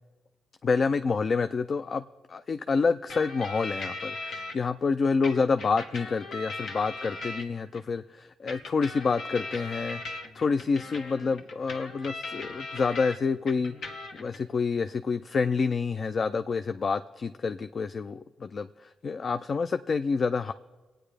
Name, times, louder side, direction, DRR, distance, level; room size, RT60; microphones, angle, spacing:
voice 1, 0.6-20.5, left 4 dB, 50° left, 11 dB, 0.4 m, -28 dB
sound 1, 3.1-4.5 5.2-7.8 8.5-13.2 13.5-14.4, left 3 dB, 70° left, 1.1 m, -39 dB
26.5 x 8.9 x 3.4 m, 1.3 s
supercardioid pair, 65°, 0 cm